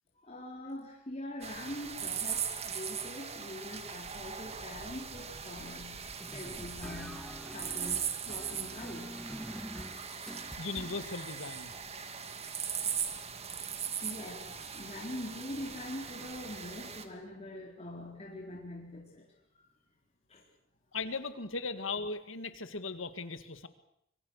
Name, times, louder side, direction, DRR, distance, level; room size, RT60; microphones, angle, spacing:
voice 1, 0.2-7.2 7.5-9.4 14.0-19.3 19.5-19.7 20.3-20.4, left 1 dB, 35° left, -2 dB, 4.4 m, -43 dB
sound 1, 1.4-17.1, right 7 dB, 35° right, 2.0 m, -39 dB
sound 2, 6.2-11.1, equal, 5° left, 1.3 m, -46 dB
voice 2, 10.3-11.7 20.9-23.7, left 4 dB, 75° left, 11 dB, 1.9 m, -38 dB
26.0 x 23.5 x 6.5 m, 0.76 s
head